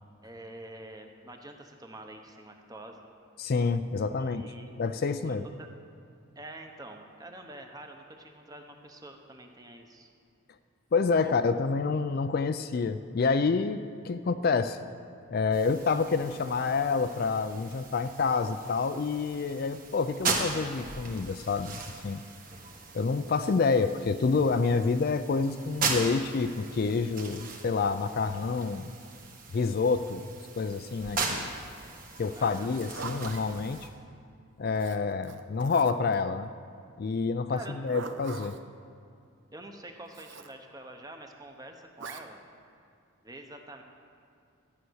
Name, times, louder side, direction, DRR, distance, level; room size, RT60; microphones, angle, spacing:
voice 1, 0.2-3.0 4.2-4.8 5.2-5.7 6.3-10.1 11.2-11.4 32.4-32.8 37.5-37.8 39.5-42.4 43.2-43.8, right 1 dB, 20° right, 4 dB, 0.9 m, -46 dB
voice 2, 3.4-4.4 4.8-5.5 10.9-13.8 14.0-14.8 15.3-22.2 22.9-28.9 29.5-30.3 30.6-31.5 32.2-33.9 34.6-36.5 37.0-38.6, left 4 dB, 45° left, 10 dB, 0.4 m, -28 dB
sound 1, 15.5-33.9, right 4 dB, 40° right, 1.5 m, -38 dB
Zipper (clothing), 32.7-33.4 34.7-36.1 37.6-38.6 40.1-40.5 42.0-42.2, right 4 dB, 60° right, 0.6 m, -42 dB
13.0 x 9.3 x 6.4 m, 2.4 s
head